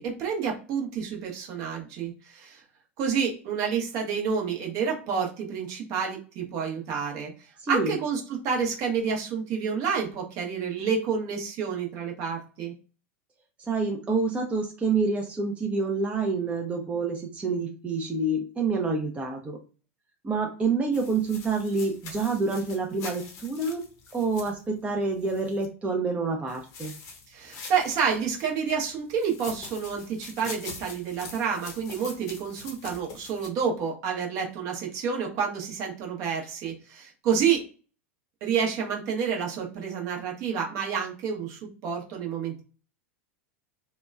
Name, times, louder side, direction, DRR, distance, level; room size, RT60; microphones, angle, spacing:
voice 1, 0.0-2.6 3.0-7.3 7.7-12.7 27.3-37.6 38.4-42.6, right 6 dB, 45° right, 0 dB, 0.9 m, -29 dB
voice 2, 7.6-8.0 13.6-19.6 20.2-23.8 24.1-26.9, right 3 dB, 15° right, 1 dB, 0.5 m, -27 dB
sound 1, 20.9-25.7 26.5-28.5 29.1-33.5, left 4 dB, 45° left, 0.8 m, -44 dB
2.9 x 2.2 x 2.2 m, 0.36 s
hypercardioid pair, 90°, 8 cm